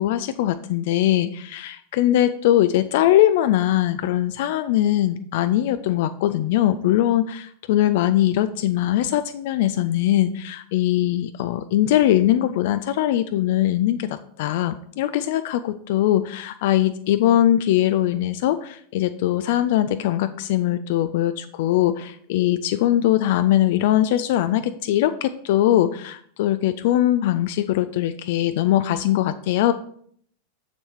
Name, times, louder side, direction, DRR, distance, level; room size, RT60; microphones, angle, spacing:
voice 1, 0.0-29.7, left 13 dB, 50° left, 11 dB, 0.4 m, -21 dB
7.0 x 6.6 x 4.6 m, 0.63 s
figure-of-eight pair, 90°, 0 cm